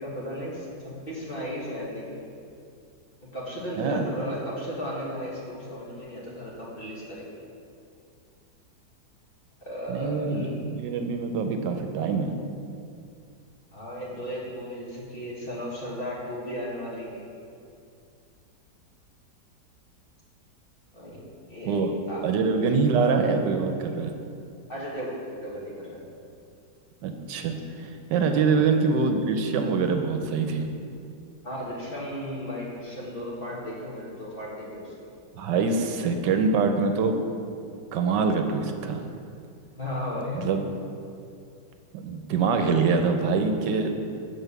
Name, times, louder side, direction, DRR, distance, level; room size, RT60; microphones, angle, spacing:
voice 1, 0.0-2.2 3.3-7.3 9.6-10.6 13.7-17.2 20.9-21.2 21.5-22.2 24.7-26.1 28.3-28.6 31.4-34.9 39.8-40.6, equal, 30° left, -6 dB, 1.9 m, -35 dB
voice 2, 3.8-4.1 9.9-12.4 21.6-21.9 22.2-24.1 27.0-30.7 35.3-37.2 37.9-39.1 40.4-40.6 41.9-43.9, right 4 dB, 80° right, 5 dB, 1.3 m, -24 dB
7.8 x 4.7 x 6.7 m, 2.4 s
omnidirectional pair, 1.9 m